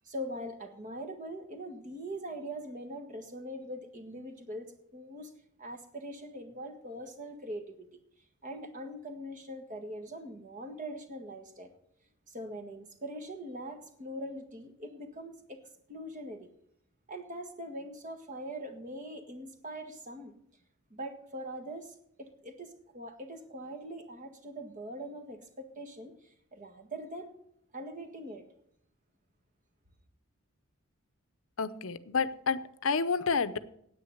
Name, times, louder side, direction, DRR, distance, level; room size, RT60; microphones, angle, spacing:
voice 1, 0.0-5.3 5.6-7.9 8.4-11.7 12.3-15.6 15.9-16.5 17.1-20.3 20.9-27.3 27.7-28.4, right 1 dB, 35° right, 7 dB, 1.7 m, -42 dB
voice 2, 31.6-33.6, left 5 dB, 65° left, 14 dB, 0.7 m, -30 dB
9.7 x 8.8 x 7.8 m, 0.73 s
head